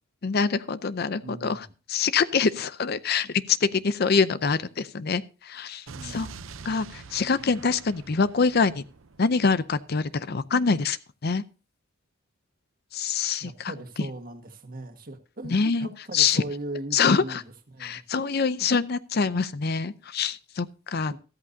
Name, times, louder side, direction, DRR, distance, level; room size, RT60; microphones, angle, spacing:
voice 1, 0.2-6.3 6.6-8.8 9.2-11.0 11.2-11.4 12.9-13.7 15.5-15.9 16.1-16.4 16.9-17.4 17.8-21.2, left 5 dB, 50° left, 0.6 m, -25 dB
voice 2, 1.1-1.6 5.9-6.4 13.4-17.4 17.7-18.2 18.6-18.7 21.1-21.2, right 1 dB, 45° right, 1.6 m, -39 dB
Explosion, 5.9-9.9, right 5 dB, 90° right, 0.7 m, -45 dB
13.5 x 13.5 x 2.7 m
head